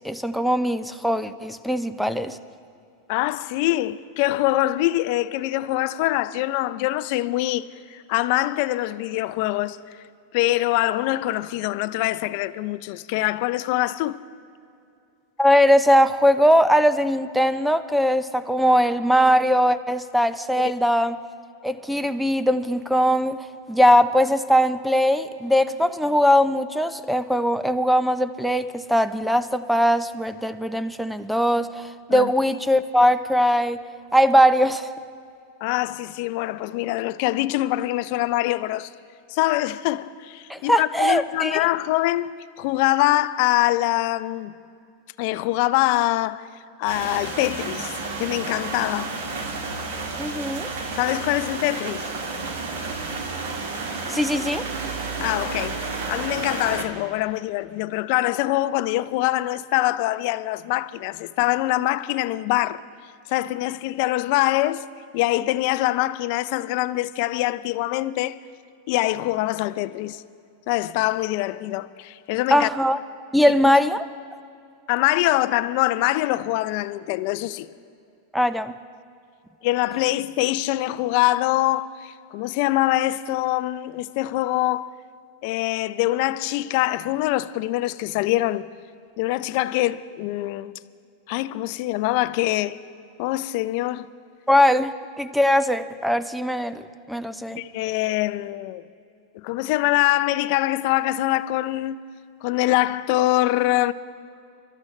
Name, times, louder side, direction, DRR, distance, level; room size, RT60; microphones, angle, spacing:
voice 1, 0.0-2.4 15.4-21.2 21.6-33.8 34.1-34.9 40.5-41.6 50.2-50.7 53.9-54.7 72.5-73.0 73.3-74.1 78.3-78.7 94.5-96.8 97.1-97.6, equal, ahead, 0.6 m, -20 dB
voice 2, 3.1-9.8 10.3-14.2 32.1-32.3 35.6-38.9 39.3-44.5 45.2-46.5 46.8-49.2 51.0-52.1 55.2-62.8 63.3-64.8 65.1-68.4 68.9-70.2 70.7-72.7 74.9-77.7 79.6-84.9 85.4-88.7 89.2-90.7 91.3-92.8 93.2-94.1 97.6-98.8 99.3-102.0 102.4-103.9, left 17 dB, 60° left, 0.5 m, -24 dB
sound 1, 46.8-56.8, right 3 dB, 75° right, 1.9 m, -31 dB
25.0 x 13.5 x 3.2 m
supercardioid pair, 125°, 0 cm